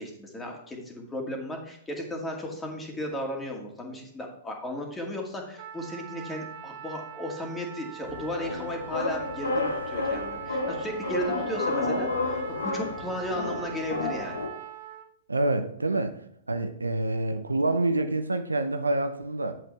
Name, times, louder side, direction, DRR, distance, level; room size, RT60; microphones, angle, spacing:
voice 1, 0.0-14.4, left 1 dB, 10° left, 2.2 m, -35 dB
Trumpet, 5.6-15.1, right 9 dB, 50° right, 1.1 m, -42 dB
sound 1, 8.0-14.5, left 2 dB, 80° left, 1.1 m, -31 dB
voice 2, 15.3-16.2 16.5-19.6, right 2 dB, 90° right, 0.7 m, -27 dB
7.7 x 7.7 x 3.3 m
figure-of-eight pair, 110°, 0 cm